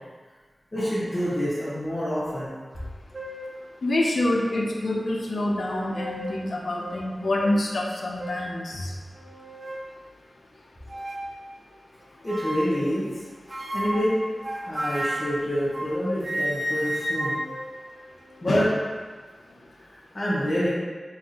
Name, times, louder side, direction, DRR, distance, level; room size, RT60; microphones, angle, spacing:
voice 1, 0.7-2.5 12.2-13.1 13.5-14.2 14.5-17.4 18.4-18.7 20.1-20.8, equal, 50° left, -11 dB, 1.2 m, -27 dB
sound 1, 2.7-2.8 3.1-3.5 4.3-4.4 5.6-6.4 6.8-7.0 7.4-7.6 8.2-8.5 9.1-9.9 10.9-11.3 12.3-12.9 13.5-18.6, equal, 50° right, 0.7 m, -32 dB
voice 2, 3.8-8.9 18.5-18.7, left 1 dB, 75° left, -1 dB, 0.6 m, -26 dB
5.7 x 2.6 x 2.8 m, 1.4 s
cardioid pair, 45°, 0 cm